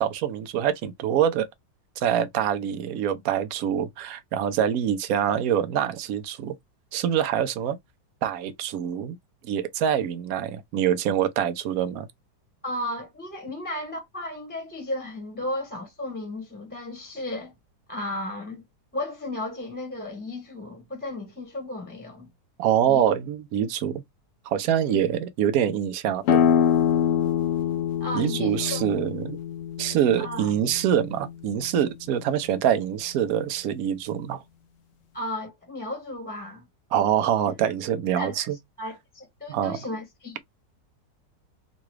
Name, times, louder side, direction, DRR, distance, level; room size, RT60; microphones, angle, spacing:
voice 1, 0.0-1.5 2.0-6.6 6.9-7.8 8.2-9.2 9.4-12.1 22.6-24.0 24.5-26.4 28.1-29.4 29.8-34.4 36.9-38.6 39.5-39.8, right 9 dB, 70° right, 0.9 m, -25 dB
voice 2, 12.6-17.5 17.9-18.6 18.9-22.3 22.8-23.0 24.9-25.0 28.0-28.8 30.2-30.5 35.1-36.6 38.0-38.4 38.8-40.4, left 1 dB, 5° left, 0.9 m, -34 dB
sound 1, 26.3-31.6, left 9 dB, 70° left, 0.8 m, -25 dB
3.8 x 2.3 x 3.1 m
omnidirectional pair, 2.0 m